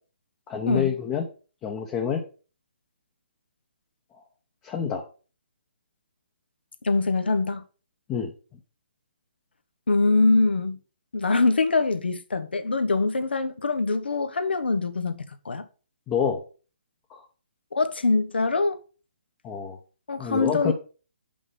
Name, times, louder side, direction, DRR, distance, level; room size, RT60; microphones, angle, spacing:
voice 1, 0.5-1.3 1.6-2.2 4.6-5.0 8.1-8.3 16.1-16.4 17.1-17.2 19.4-19.8 20.2-20.7, left 7 dB, 20° left, 0.8 m, -27 dB
voice 2, 6.8-7.6 9.9-10.8 11.1-15.6 17.7-18.8 20.1-20.7, left 3 dB, 80° left, 0.9 m, -23 dB
5.4 x 5.3 x 4.8 m
hypercardioid pair, 145°, 6 cm